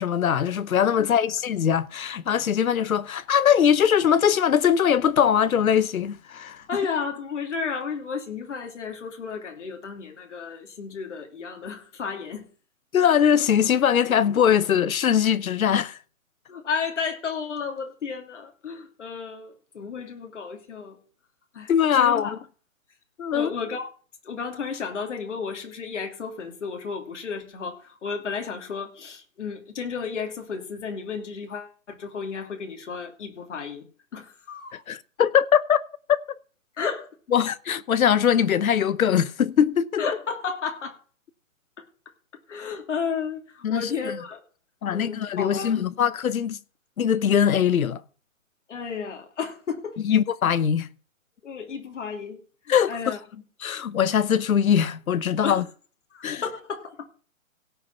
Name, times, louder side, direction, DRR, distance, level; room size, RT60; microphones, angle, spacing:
voice 1, 0.0-6.6 12.9-16.0 21.7-22.4 23.2-23.5 34.9-35.8 36.1-36.2 37.3-40.0 43.6-44.2 44.8-46.6 47.0-48.0 50.0-50.9 52.7-53.0 53.6-55.6 56.2-56.4, left 8 dB, 85° left, 0.9 m, -21 dB
voice 2, 1.0-1.3 6.7-12.5 16.5-21.0 21.5-22.3 23.3-23.9 24.2-33.9 34.1-34.8 36.8-37.1 40.0-40.9 41.8-41.9 42.5-44.4 44.9-45.9 48.7-50.0 51.4-53.4 55.4-55.6 56.1-57.1, left 5 dB, 60° left, 2.8 m, -33 dB
17.0 x 5.7 x 5.5 m
hypercardioid pair, 165°, 41 cm